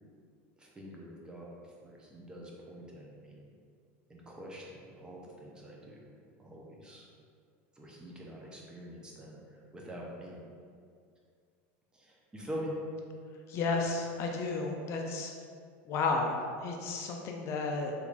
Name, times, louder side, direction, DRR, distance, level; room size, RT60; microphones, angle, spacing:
voice 1, 0.6-3.5 4.1-6.1 6.4-7.1 7.8-10.4 11.9-12.8, equal, 10° right, -3 dB, 0.5 m, -45 dB
voice 2, 13.5-15.3 15.9-17.9, left 3 dB, 45° left, 1 dB, 0.4 m, -32 dB
3.6 x 3.0 x 2.4 m, 2.2 s
supercardioid pair, 130°, 7 cm